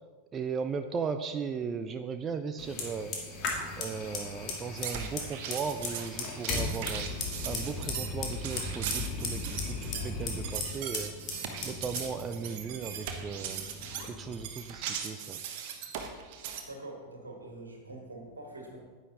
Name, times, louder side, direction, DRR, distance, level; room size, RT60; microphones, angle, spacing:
voice 1, 0.3-3.2 3.8-7.1 7.4-11.2 11.6-13.7 14.1-15.4, right 6 dB, 25° right, 8 dB, 0.5 m, -36 dB
Fire, 2.6-14.4, left 3 dB, 40° left, 2.1 m, -37 dB
sound 1, 4.8-16.6, right 8 dB, 50° right, 1.1 m, -39 dB
voice 2, 16.6-18.8, right 2 dB, 75° right, 2 dB, 1.9 m, -44 dB
9.8 x 9.4 x 3.9 m, 1.4 s
figure-of-eight pair, 90°, 0 cm